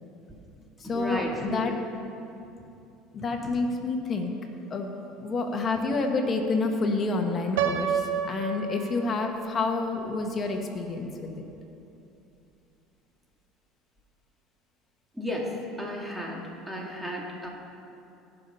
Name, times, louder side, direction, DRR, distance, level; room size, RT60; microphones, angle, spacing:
voice 1, 0.3-1.7 2.6-2.7 3.2-3.5 15.1-17.5, equal, 5° right, -2 dB, 2.2 m, -35 dB
voice 2, 0.9-1.7 3.1-4.3 4.7-11.4, left 3 dB, 35° left, 3 dB, 1.6 m, -28 dB
Piano, 7.6-9.5, right 7 dB, 85° right, 0.6 m, -29 dB
17.5 x 5.9 x 5.7 m, 2.7 s
supercardioid pair, 100°, 0 cm